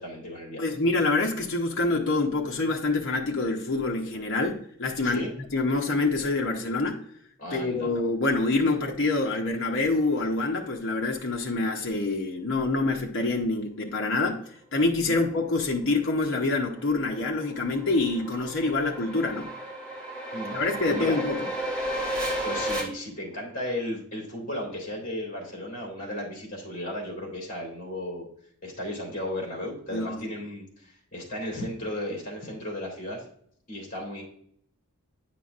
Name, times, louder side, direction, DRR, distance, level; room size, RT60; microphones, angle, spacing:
voice 1, 0.0-0.7 5.0-5.3 7.4-7.9 15.0-15.2 20.3-20.6 20.9-21.2 22.4-28.3 28.6-33.2 33.7-34.2, left 1 dB, 35° left, -1 dB, 2.8 m, -35 dB
voice 2, 0.6-7.0 7.5-19.5 20.5-21.5 29.9-30.2, left 3 dB, 55° left, 0 dB, 0.8 m, -26 dB
sound 1, 16.2-22.8, right 1 dB, 15° right, 1.7 m, -33 dB
9.3 x 5.7 x 2.5 m, 0.64 s
head